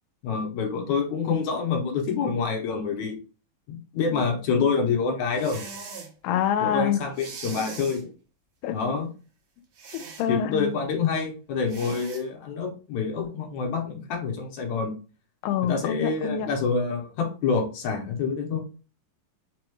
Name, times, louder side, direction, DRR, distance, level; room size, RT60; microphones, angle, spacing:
voice 1, 0.2-3.2 3.7-5.6 6.6-8.1 8.7-9.1 10.3-14.9 15.6-18.6, left 5 dB, 70° left, 1.9 m, -27 dB
sound 1, 5.3-6.1 7.1-8.0 9.8-10.3 11.7-12.2, right 5 dB, 65° right, 1.9 m, -40 dB
voice 2, 6.2-7.0 8.6-8.8 9.9-10.7 15.4-16.5, left 9 dB, 85° left, 2.3 m, -26 dB
5.3 x 3.0 x 2.3 m
omnidirectional pair, 3.9 m